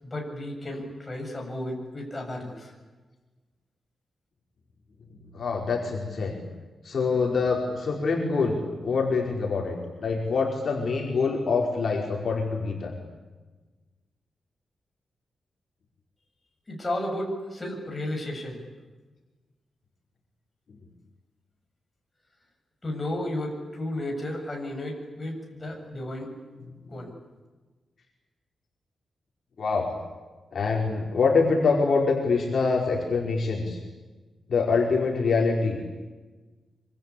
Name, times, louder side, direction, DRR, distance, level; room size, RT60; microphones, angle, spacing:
voice 1, 0.0-2.7 16.7-18.6 22.8-26.3 26.9-27.1, left 1 dB, 20° left, 0 dB, 7.6 m, -33 dB
voice 2, 5.3-6.4 6.8-12.9 29.6-29.9 30.5-33.8 34.5-35.8, left 4 dB, 55° left, -1 dB, 5.0 m, -25 dB
26.0 x 25.5 x 8.7 m, 1.3 s
wide cardioid pair, 150°, 0 cm